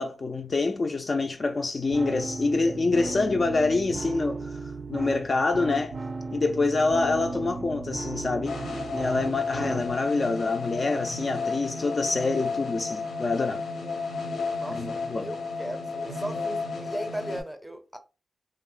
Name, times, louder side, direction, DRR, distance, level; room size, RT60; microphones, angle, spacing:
voice 1, 0.0-6.0 6.3-8.6 8.9-13.6 14.7-15.3, left 3 dB, 45° left, 0.3 m, -26 dB
sound 1, 1.9-9.9, right 3 dB, 55° right, 0.4 m, -35 dB
sound 2, 8.5-17.4, left 4 dB, 85° left, 0.7 m, -32 dB
voice 2, 14.5-18.0, right 1 dB, 5° right, 0.5 m, -37 dB
2.8 x 2.0 x 2.4 m
cardioid pair, 60°, 0 cm